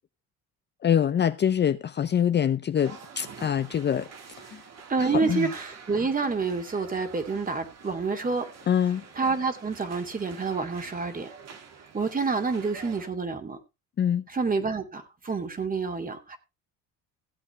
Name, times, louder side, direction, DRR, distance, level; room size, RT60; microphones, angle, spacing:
voice 1, 0.8-4.1 4.5-4.6 5.0-5.5 8.7-9.0 14.0-14.2, left 9 dB, 35° left, 0.6 m, -24 dB
sound 1, 2.8-13.1, right 6 dB, 55° right, 2.6 m, -47 dB
voice 2, 4.9-8.5 9.1-11.3 11.9-13.6 14.3-16.4, right 4 dB, 25° right, 2.5 m, -28 dB
16.0 x 8.2 x 3.3 m
cardioid pair, 90°, 31 cm